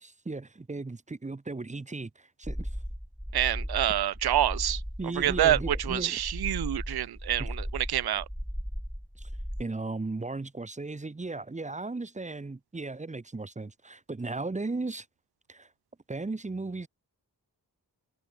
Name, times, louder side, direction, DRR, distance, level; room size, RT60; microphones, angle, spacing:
voice 1, 0.0-2.7 5.0-6.2 7.4-7.5 9.2-9.3 9.6-15.1 15.5-15.7 16.1-16.9, right 3 dB, 20° right, 0.7 m, -36 dB
sound 1, 2.4-9.6, equal, ahead, 1.1 m, -36 dB
voice 2, 3.3-4.8 5.2-8.3, right 12 dB, 70° right, 0.5 m, -27 dB
wide cardioid pair, 65°, 40 cm